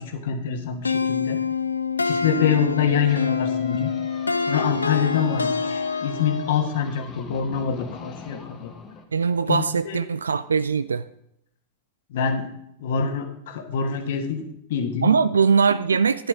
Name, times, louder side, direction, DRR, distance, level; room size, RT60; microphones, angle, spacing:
voice 1, 0.0-1.4 2.0-3.9 4.5-8.7 9.5-10.0 12.1-12.5 12.8-14.4 14.7-15.1, left 7 dB, 55° left, 7 dB, 1.4 m, -25 dB
sound 1, 0.8-6.6, left 5 dB, 80° left, 0.5 m, -26 dB
sound 2, 2.8-9.0, left 5 dB, 25° left, 1.6 m, -43 dB
voice 2, 9.1-11.0 15.0-16.3, right 5 dB, 75° right, 15 dB, 0.3 m, -21 dB
11.5 x 9.9 x 3.6 m, 0.75 s
figure-of-eight pair, 90°, 0 cm